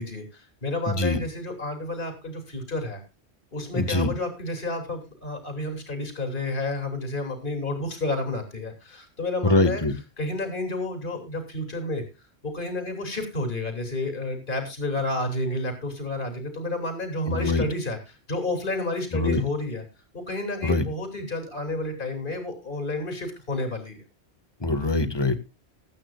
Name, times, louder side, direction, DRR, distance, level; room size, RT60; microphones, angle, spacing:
voice 1, 0.0-3.0 3.5-9.8 10.2-12.0 12.4-18.0 18.3-19.8 20.1-24.0, left 2 dB, 50° left, 5 dB, 3.3 m, -30 dB
voice 2, 0.9-1.2 3.7-4.1 9.4-9.9 17.3-17.6 19.1-19.4 20.6-20.8 24.6-25.4, left 2 dB, 25° left, 10 dB, 1.5 m, -23 dB
21.0 x 9.0 x 2.3 m, 0.28 s
omnidirectional pair, 1.1 m